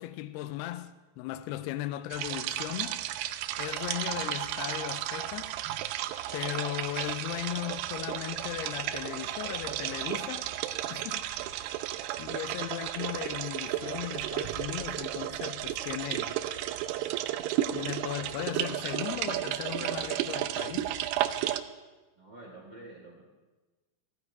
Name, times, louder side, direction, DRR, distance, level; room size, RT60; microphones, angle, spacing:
voice 1, 0.0-3.0 3.6-5.5 6.3-10.5 10.9-11.3 12.2-16.3 17.7-20.9, left 14 dB, 85° left, 2.4 m, -37 dB
sound 1, 2.1-21.6, right 13 dB, 80° right, 2.4 m, -33 dB
voice 2, 22.2-23.2, right 2 dB, 45° right, 1.6 m, -48 dB
15.5 x 14.5 x 4.7 m
omnidirectional pair, 5.3 m